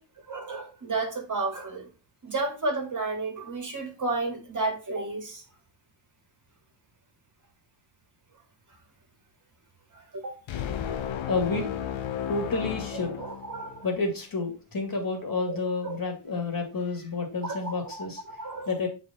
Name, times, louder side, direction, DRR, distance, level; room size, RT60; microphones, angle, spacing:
voice 1, 0.3-1.9 2.2-5.4 10.1-10.4 13.2-13.9 15.4-15.6 15.8-16.0 17.4-18.7, right 3 dB, 35° right, 2.0 m, -32 dB
sound 1, 10.5-14.0, left 9 dB, 65° left, 0.8 m, -33 dB
voice 2, 11.3-11.9 12.3-13.2 13.8-18.2 18.7-18.9, left 3 dB, 40° left, 2.4 m, -30 dB
7.0 x 4.1 x 4.0 m
cardioid pair, 95°, 50 cm